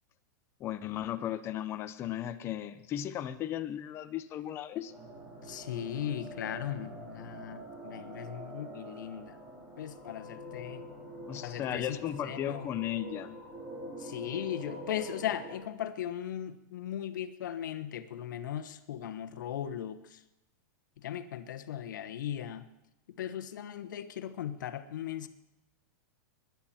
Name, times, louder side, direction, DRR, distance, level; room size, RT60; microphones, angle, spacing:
voice 1, 0.6-4.9 11.3-13.4, left 11 dB, 25° left, 9 dB, 0.7 m, -36 dB
sound 1, 4.9-15.6, right 1 dB, 20° right, 3.8 m, -45 dB
voice 2, 5.4-9.4 9.8-10.8 11.4-12.0 12.2-12.7 14.0-20.2 21.0-22.7 23.2-25.3, left 10 dB, 80° left, 10 dB, 1.2 m, -38 dB
20.5 x 10.5 x 4.4 m, 0.92 s
supercardioid pair, 155°, 10 cm